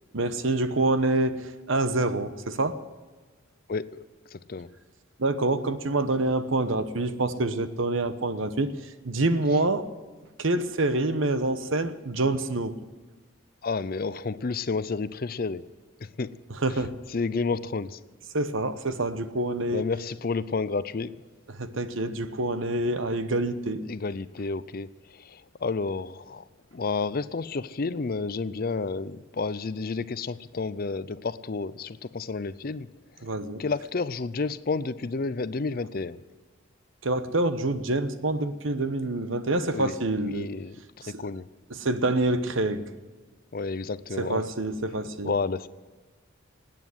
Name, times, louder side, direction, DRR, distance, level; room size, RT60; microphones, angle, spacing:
voice 1, 0.1-2.8 5.2-8.7 9.0-9.9 10.4-12.8 16.6-17.0 18.3-19.8 21.5-23.8 33.2-33.6 37.0-40.5 41.0-41.2 41.7-42.8 44.2-45.3, right 2 dB, 65° right, 12 dB, 1.0 m, -26 dB
voice 2, 3.7-4.0 4.3-4.7 13.6-15.6 16.0-16.3 17.1-18.0 19.7-21.1 23.9-26.4 26.7-32.9 33.6-36.2 39.7-40.0 40.2-40.8 41.1-41.5 43.5-44.5 45.2-45.7, left 4 dB, 45° left, 16 dB, 0.5 m, -30 dB
18.5 x 9.1 x 7.9 m, 1.4 s
head